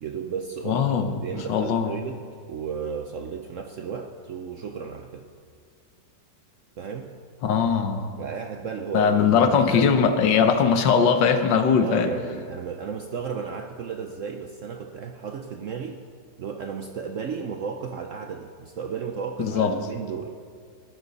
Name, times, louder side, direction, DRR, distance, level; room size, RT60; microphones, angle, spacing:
voice 1, 0.0-2.2 2.5-5.3 6.8-7.1 8.2-9.2 9.5-9.9 11.8-16.0 16.4-20.5, right 6 dB, 65° right, 5 dB, 0.8 m, -34 dB
voice 2, 0.7-1.1 1.5-1.9 7.4-8.1 8.9-12.1 19.4-19.7, left 6 dB, 80° left, 7 dB, 1.7 m, -20 dB
20.0 x 12.5 x 4.1 m, 2.1 s
omnidirectional pair, 2.0 m